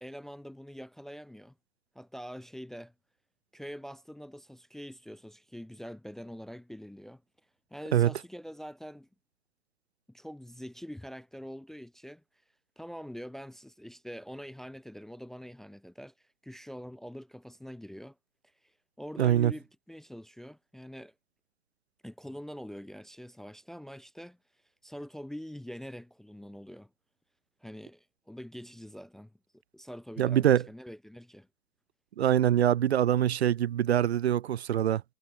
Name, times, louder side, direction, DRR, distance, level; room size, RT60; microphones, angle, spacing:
voice 1, 0.0-1.5 1.9-2.9 3.5-7.2 7.7-9.1 10.1-12.2 12.8-16.1 16.4-18.2 19.0-21.1 22.0-24.4 24.8-26.9 27.6-29.3 29.7-31.5, equal, ahead, 0.7 m, -44 dB
voice 2, 19.2-19.5 30.2-30.6 32.2-35.0, right 11 dB, 55° right, 0.7 m, -24 dB
hypercardioid pair, 135°, 40 cm